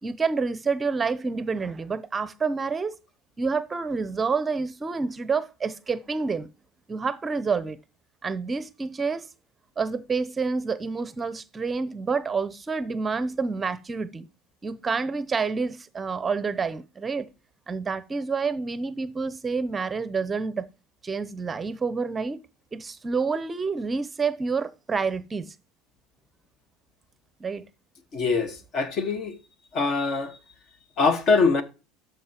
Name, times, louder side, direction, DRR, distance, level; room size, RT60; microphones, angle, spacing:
voice 1, 0.0-3.0 3.4-6.5 6.9-7.8 8.2-9.3 9.8-14.3 14.6-17.3 17.7-20.7 21.0-22.4 22.7-25.5 27.4-27.6, right 4 dB, 25° right, 0.6 m, -28 dB
voice 2, 28.1-29.4 29.7-30.4 31.0-31.6, left 4 dB, 45° left, 1.4 m, -23 dB
13.0 x 5.1 x 2.9 m
hypercardioid pair, 85°, 0 cm